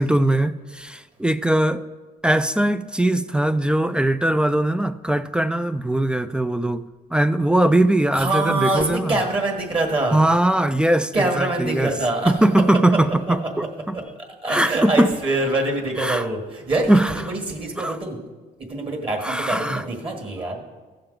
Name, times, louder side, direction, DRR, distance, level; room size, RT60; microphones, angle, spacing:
voice 1, 0.0-1.8 2.2-6.8 7.1-9.2 10.1-11.9 12.2-14.0 14.5-15.1 16.0-16.3 16.9-17.1 17.8-18.0 19.2-19.8, right 1 dB, 5° right, 12 dB, 0.3 m, -20 dB
voice 2, 8.1-10.2 11.1-12.3 13.9-14.0 14.4-18.2 18.7-20.6, right 2 dB, 30° right, 2 dB, 1.6 m, -24 dB
15.5 x 6.7 x 3.9 m, 1.3 s
cardioid pair, 110°, 17 cm